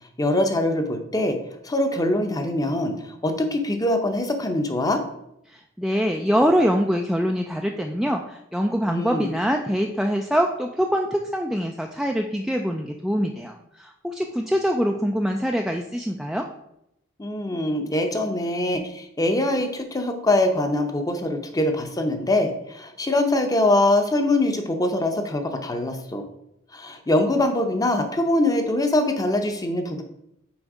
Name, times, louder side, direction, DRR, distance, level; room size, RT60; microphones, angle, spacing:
voice 1, 0.2-1.4 1.6-5.0 8.9-9.3 17.2-26.2 26.7-30.0, left 1 dB, 20° left, 5 dB, 0.7 m, -23 dB
voice 2, 5.8-16.5, equal, ahead, 2 dB, 0.3 m, -24 dB
6.2 x 4.4 x 4.8 m, 0.80 s
head